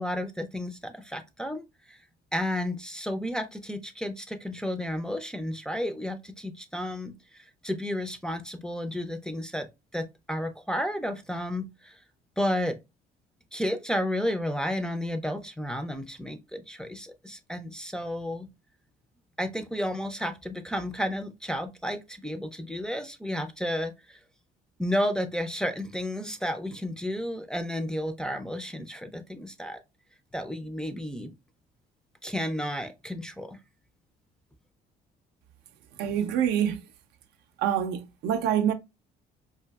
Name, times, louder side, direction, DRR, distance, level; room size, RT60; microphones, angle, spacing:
voice 1, 0.0-2.0 2.3-12.0 12.4-12.8 13.5-18.5 19.4-24.2 24.8-29.8 30.3-31.3 32.2-33.6, equal, 5° left, 0.4 m, -32 dB
voice 2, 36.0-36.8 37.6-38.7, right 9 dB, 80° right, 0.5 m, -26 dB
4.7 x 2.5 x 2.2 m
cardioid pair, 110°, 17 cm